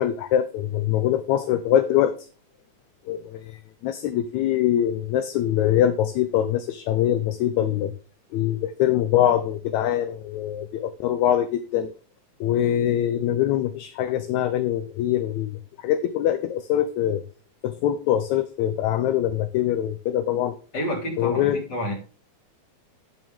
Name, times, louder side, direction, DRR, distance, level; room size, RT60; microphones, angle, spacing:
voice 1, 0.0-2.1 3.1-7.9 8.3-11.9 12.4-17.2 17.6-20.6 21.2-21.6, left 11 dB, 75° left, 10 dB, 2.0 m, -23 dB
voice 2, 20.7-21.9, left 1 dB, 35° left, 2 dB, 3.6 m, -29 dB
9.1 x 8.6 x 3.7 m, 0.37 s
omnidirectional pair, 3.5 m